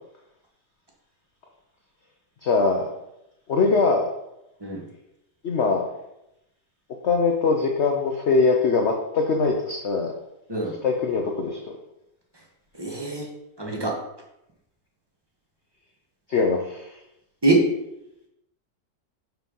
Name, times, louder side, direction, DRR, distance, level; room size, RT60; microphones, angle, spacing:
voice 1, 2.4-2.8 3.5-4.1 5.4-5.8 7.0-10.1 10.8-11.7 16.3-16.9, left 4 dB, 55° left, 1 dB, 0.8 m, -22 dB
voice 2, 12.8-13.3 13.6-14.0 17.4-17.6, right 2 dB, 15° right, -2 dB, 1.1 m, -23 dB
6.0 x 4.6 x 5.4 m, 0.86 s
omnidirectional pair, 1.9 m